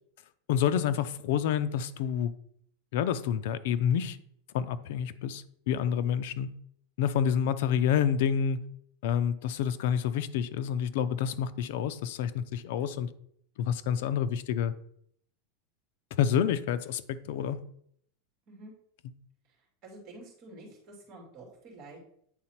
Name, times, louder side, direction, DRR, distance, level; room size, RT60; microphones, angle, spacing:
voice 1, 0.5-2.3 2.9-4.2 4.5-6.5 7.0-8.6 9.0-13.1 13.6-14.7 16.2-17.6, left 8 dB, 55° left, 13 dB, 0.5 m, -28 dB
voice 2, 19.8-22.0, right 2 dB, 35° right, -1 dB, 2.5 m, -48 dB
8.9 x 3.9 x 4.4 m, 0.67 s
supercardioid pair, 170°, 0 cm